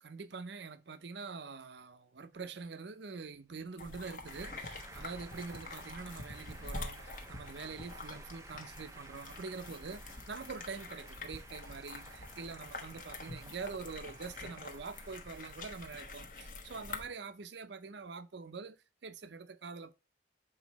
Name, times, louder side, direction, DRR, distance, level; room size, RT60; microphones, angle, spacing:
voice 1, 0.0-19.9, right 4 dB, 70° right, 0.6 m, -45 dB
sound 1, 3.8-17.1, left 3 dB, 45° left, 1.1 m, -46 dB
sound 2, 4.2-16.3, right 3 dB, 15° right, 0.5 m, -55 dB
7.2 x 4.3 x 3.0 m
head